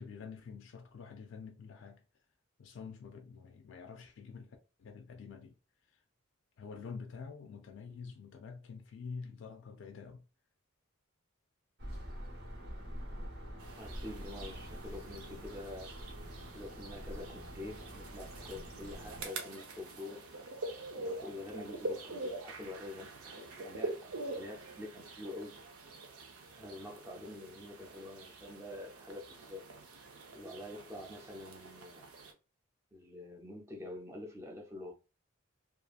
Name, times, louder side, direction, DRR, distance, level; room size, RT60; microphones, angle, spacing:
voice 1, 0.0-2.0 2.6-5.6 5.9-6.0 6.6-10.2, left 5 dB, 60° left, 0.3 m, -47 dB
sound 1, 11.8-19.3, equal, 50° right, 0.8 m, -46 dB
sound 2, 13.6-32.3, right 2 dB, 80° right, 0.6 m, -45 dB
voice 2, 13.7-15.9 16.5-20.3 20.9-25.6 26.5-29.7 30.3-32.0 32.9-34.9, left 2 dB, 10° right, 0.4 m, -47 dB
2.7 x 2.4 x 2.3 m
head